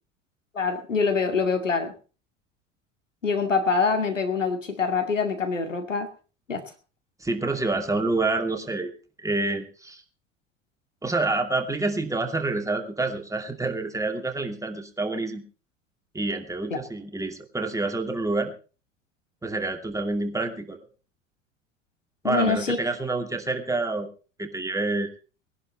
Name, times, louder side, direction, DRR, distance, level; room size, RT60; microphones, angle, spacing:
voice 1, 0.5-1.9 3.2-6.1 6.5-6.6 16.7-16.8 22.2-22.8, left 4 dB, 85° left, 6 dB, 2.3 m, -25 dB
voice 2, 7.2-8.9 9.2-10.0 11.0-15.4 16.1-18.5 19.4-20.8 22.2-24.1 24.4-25.1, right 2 dB, 10° right, 4 dB, 2.6 m, -27 dB
20.5 x 11.0 x 4.3 m, 0.35 s
figure-of-eight pair, 75°, 37 cm